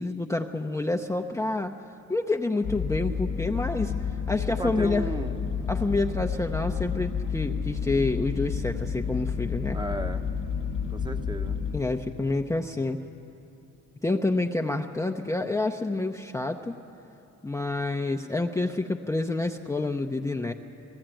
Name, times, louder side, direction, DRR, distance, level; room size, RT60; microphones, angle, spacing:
voice 1, 0.0-1.7 2.1-5.1 5.7-9.8 11.7-13.0 14.0-16.8 17.4-20.5, left 2 dB, 10° left, 2 dB, 0.7 m, -28 dB
sound 1, 2.6-11.8, left 7 dB, 60° left, 1.0 m, -30 dB
sound 2, 2.9-12.6, right 4 dB, 80° right, 1.1 m, -45 dB
voice 2, 4.5-5.4 9.7-10.3 10.9-11.6, right 1 dB, 15° right, 7 dB, 1.0 m, -35 dB
19.0 x 15.5 x 9.0 m, 2.9 s
cardioid pair, 90°, 30 cm